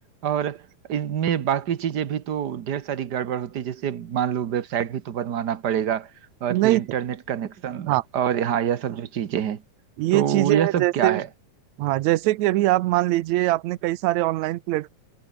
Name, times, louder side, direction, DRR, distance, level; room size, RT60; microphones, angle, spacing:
voice 1, 0.2-0.6 0.9-6.1 6.4-9.6 10.1-11.3, right 9 dB, 55° right, 1.2 m, -26 dB
voice 2, 6.5-6.8 7.9-8.0 10.0-11.2 11.8-14.9, right 17 dB, 80° right, 2.1 m, -22 dB
omnidirectional pair, 3.3 m